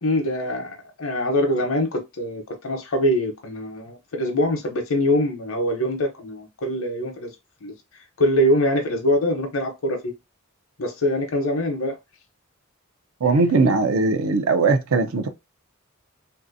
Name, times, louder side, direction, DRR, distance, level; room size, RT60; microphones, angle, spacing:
voice 1, 0.0-7.3 7.6-7.7 8.2-10.1 10.8-12.0, left 1 dB, 75° left, 0.8 m, -23 dB
voice 2, 13.2-15.3, right 3 dB, 80° right, 0.5 m, -19 dB
3.2 x 2.6 x 2.6 m
head